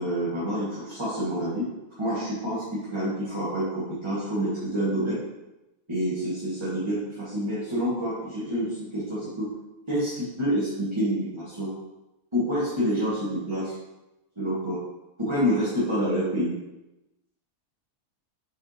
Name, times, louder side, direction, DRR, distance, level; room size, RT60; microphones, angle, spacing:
voice 1, 0.0-1.7 2.0-5.2 5.9-9.5 9.9-11.7 12.3-13.7 14.4-14.8 15.2-16.5, equal, 20° right, -11 dB, 2.2 m, -27 dB
8.1 x 4.9 x 3.2 m, 0.97 s
omnidirectional pair, 1.6 m